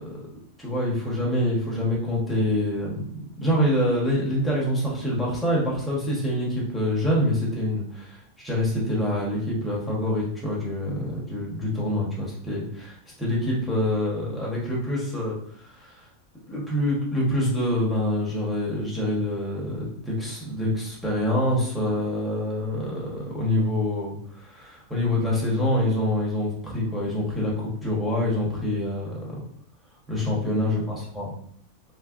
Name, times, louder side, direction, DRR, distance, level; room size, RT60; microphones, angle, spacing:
voice 1, 0.6-16.0 16.5-29.4 30.1-31.3, left 1 dB, ahead, -5 dB, 0.7 m, -26 dB
3.2 x 3.2 x 2.4 m, 0.64 s
omnidirectional pair, 1.5 m